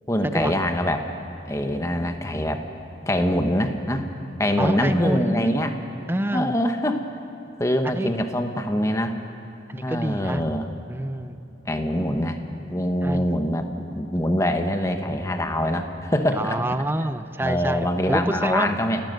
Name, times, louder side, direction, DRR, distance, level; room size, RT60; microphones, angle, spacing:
voice 1, 0.1-1.0 1.4-2.6 3.1-4.1 4.4-5.7 6.3-7.0 7.6-9.1 9.8-10.7 11.7-12.4 12.7-16.6 17.4-19.0, left 1 dB, 15° left, 6 dB, 1.0 m, -24 dB
voice 2, 4.6-5.5 6.1-6.5 7.8-8.1 9.7-10.4 10.9-11.4 13.0-13.3 16.3-18.8, right 1 dB, 10° right, 11 dB, 0.5 m, -27 dB
28.5 x 12.0 x 7.7 m, 2.9 s
head